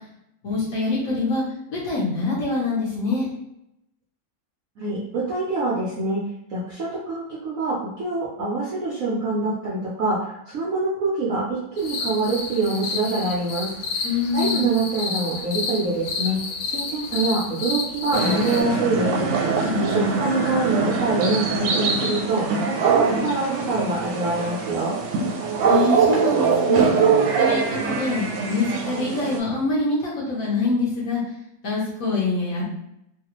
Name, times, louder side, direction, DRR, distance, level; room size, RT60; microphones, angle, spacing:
voice 1, 0.4-1.4 1.7-3.3 14.0-14.6 19.6-20.1 25.6-27.0 27.4-31.2 31.6-32.7, left 3 dB, 55° left, -7 dB, 1.1 m, -25 dB
voice 2, 4.8-6.2 6.5-16.4 16.6-25.0, right 2 dB, 65° right, -7 dB, 0.8 m, -25 dB
sound 1, 11.8-18.6, left 4 dB, 85° left, 1.3 m, -30 dB
sound 2, 18.1-29.4, right 5 dB, 80° right, 1.4 m, -22 dB
3.2 x 2.3 x 2.9 m, 0.81 s
omnidirectional pair, 2.1 m